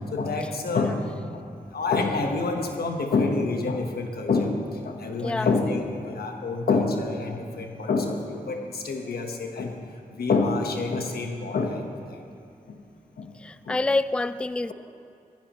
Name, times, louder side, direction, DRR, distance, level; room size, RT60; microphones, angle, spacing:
voice 1, 0.1-1.0 1.3-1.4 1.7-4.5 4.8-9.7 10.2-11.8 12.1-12.2 13.2-13.3 13.7-13.8, left 3 dB, 85° left, 3 dB, 1.3 m, -27 dB
voice 2, 5.2-5.5 13.4-14.7, left 2 dB, 5° left, 14 dB, 0.4 m, -27 dB
16.5 x 15.0 x 3.1 m, 2.4 s
cardioid pair, 40°, 16 cm